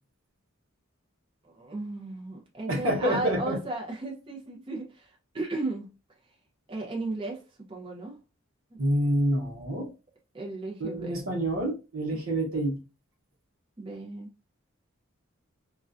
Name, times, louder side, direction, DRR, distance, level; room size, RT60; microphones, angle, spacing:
voice 1, 1.4-5.9 6.7-7.4 7.7-8.2 8.7-8.8 10.3-11.2 12.1-12.2 13.8-14.3, right 2 dB, 25° right, 0.5 m, -35 dB
voice 2, 2.7-3.6 8.8-9.9 10.8-12.8, right 1 dB, 85° right, 0.9 m, -27 dB
2.4 x 2.2 x 2.4 m
head